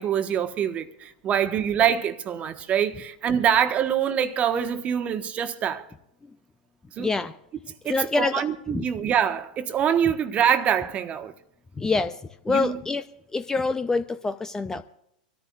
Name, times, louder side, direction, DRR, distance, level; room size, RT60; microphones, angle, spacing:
voice 1, 0.0-5.9 7.0-7.1 7.8-11.3 12.5-12.8, right 9 dB, 30° right, 1.4 m, -25 dB
voice 2, 7.0-7.3 7.9-8.4 8.7-8.8 11.8-12.1 12.4-13.0 13.3-14.8, left 3 dB, 10° left, 0.7 m, -25 dB
26.0 x 14.0 x 2.5 m
hypercardioid pair, 105°, 5 cm